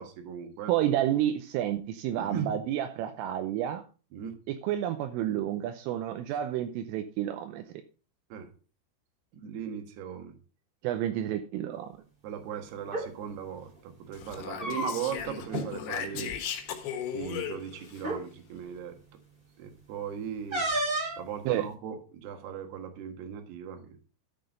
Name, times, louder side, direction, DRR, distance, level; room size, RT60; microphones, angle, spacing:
voice 1, 0.0-0.7 2.1-2.5 4.1-4.3 8.3-8.5 9.4-10.3 12.2-16.3 17.1-19.0 19.6-20.6 21.2-24.0, right 8 dB, 65° right, 5 dB, 3.2 m, -38 dB
voice 2, 0.7-3.8 4.5-7.6 10.8-11.9 21.4-21.6, right 11 dB, 80° right, 7 dB, 3.3 m, -30 dB
sound 1, 12.8-13.1 14.3-15.2 15.5-15.7 16.0-16.3 17.2-17.3 18.0-18.2 20.5-21.2, right 1 dB, 20° right, 1.5 m, -31 dB
Speech, 14.1-18.0, left 8 dB, 65° left, 3.4 m, -37 dB
13.5 x 6.1 x 5.2 m, 0.36 s
omnidirectional pair, 5.9 m